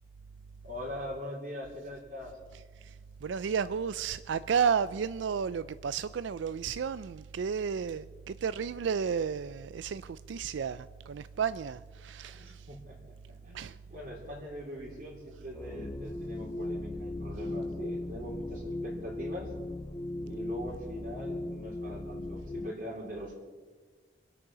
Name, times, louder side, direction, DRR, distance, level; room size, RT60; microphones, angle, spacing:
voice 1, 0.6-2.4 12.3-13.6 13.9-19.5 20.3-23.3, equal, 45° right, 3.1 m, -42 dB
voice 2, 2.8-12.8 13.5-13.8, right 6 dB, 85° right, 0.4 m, -32 dB
sound 1, 15.5-22.7, left 1 dB, 20° left, 0.4 m, -38 dB
25.0 x 8.6 x 6.2 m
head